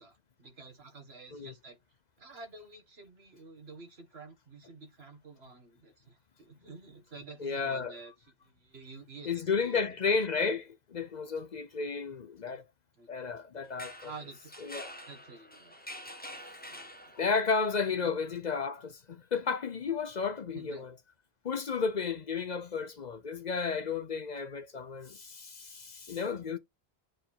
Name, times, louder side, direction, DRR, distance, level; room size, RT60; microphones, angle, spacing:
voice 1, 0.0-1.8 2.2-8.1 8.4-9.8 12.5-12.6 13.0-13.1 14.0-14.5 15.1-15.8 16.7-17.1 18.0-18.1 20.5-20.9, right 4 dB, 75° right, 2.2 m, -50 dB
voice 2, 7.4-8.0 9.2-12.6 13.1-14.1 14.6-14.9 17.2-20.9 21.4-26.6, left 5 dB, 50° left, 0.7 m, -32 dB
sound 1, 13.6-17.5, equal, 10° left, 1.2 m, -46 dB
7.7 x 4.6 x 5.6 m
omnidirectional pair, 1.1 m